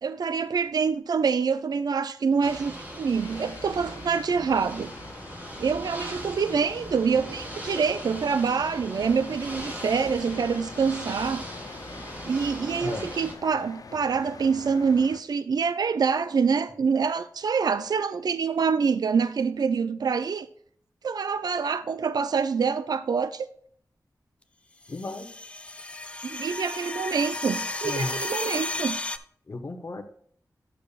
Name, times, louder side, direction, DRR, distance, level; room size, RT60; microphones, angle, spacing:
voice 1, 0.0-4.9 5.6-11.5 12.2-20.5 21.0-23.5 26.2-29.0, right 5 dB, 75° right, 0.4 m, -26 dB
Ocean / Boat Water vehicle, 2.4-13.3, equal, 25° right, 2.7 m, -39 dB
sound 1, 3.1-15.2, left 5 dB, 65° left, 0.5 m, -46 dB
sound 2, 24.8-29.2, left 2 dB, 15° left, 0.5 m, -33 dB
voice 2, 24.9-25.3 27.8-28.2 29.5-30.0, left 2 dB, 45° left, 0.8 m, -34 dB
10.0 x 6.6 x 2.4 m
wide cardioid pair, 60°, 7 cm